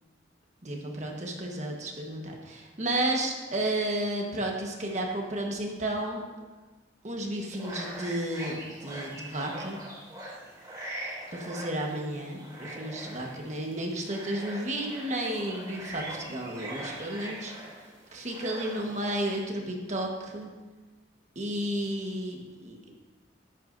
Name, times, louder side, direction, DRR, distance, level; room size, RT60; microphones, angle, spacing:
voice 1, 0.6-6.2 7.0-9.8 11.3-17.5 18.1-20.5 21.3-23.0, right 1 dB, 35° right, 0 dB, 1.4 m, -32 dB
sound 1, 7.5-19.4, right 1 dB, 20° right, 3.0 m, -42 dB
13.5 x 11.5 x 2.7 m, 1.3 s
head